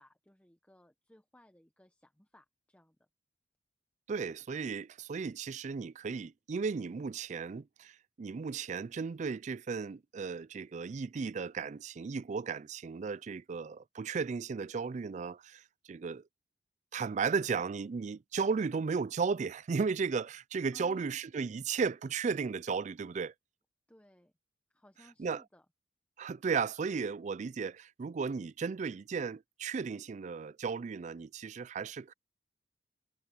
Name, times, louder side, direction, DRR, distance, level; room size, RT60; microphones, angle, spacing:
voice 1, 0.0-3.0 20.7-21.2 23.9-24.3 24.7-25.7, left 1 dB, 10° left, 1.0 m, -61 dB
voice 2, 4.1-15.6 15.9-16.2 16.9-23.3 25.2-25.4 26.2-32.1, right 5 dB, 40° right, 0.3 m, -35 dB
head